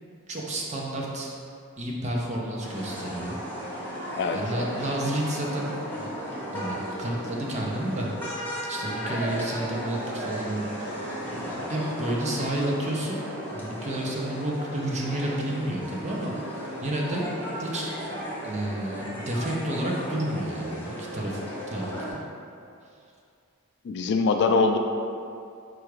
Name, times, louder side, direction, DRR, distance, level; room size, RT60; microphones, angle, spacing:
voice 1, 0.3-1.3 1.8-3.4 4.3-6.1 6.5-8.1 8.4-11.1 11.3-13.2 13.5-16.3 16.6-18.2 18.4-21.4 21.7-22.2, right 1 dB, 30° right, -2 dB, 0.6 m, -31 dB
sound 1, 2.6-22.1, equal, 10° left, 0.8 m, -35 dB
voice 2, 4.2-4.7 23.8-24.8, left 4 dB, 50° left, 4 dB, 0.3 m, -23 dB
4.6 x 2.4 x 4.7 m, 2.4 s
head